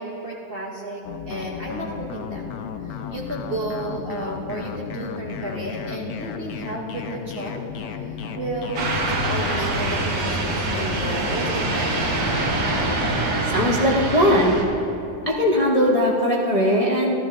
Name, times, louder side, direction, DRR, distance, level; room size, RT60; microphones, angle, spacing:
voice 1, 0.0-2.5 2.8-8.0 8.4-12.1, right 2 dB, 50° right, -2 dB, 0.7 m, -33 dB
sound 1, 1.0-13.5, left 7 dB, 70° left, 1.0 m, -34 dB
sound 2, 8.7-14.6, right 2 dB, 70° right, 1.6 m, -24 dB
voice 2, 13.5-14.6 15.3-17.2, equal, 30° left, -4 dB, 0.6 m, -19 dB
15.0 x 12.5 x 2.4 m, 2.8 s
omnidirectional pair, 1.8 m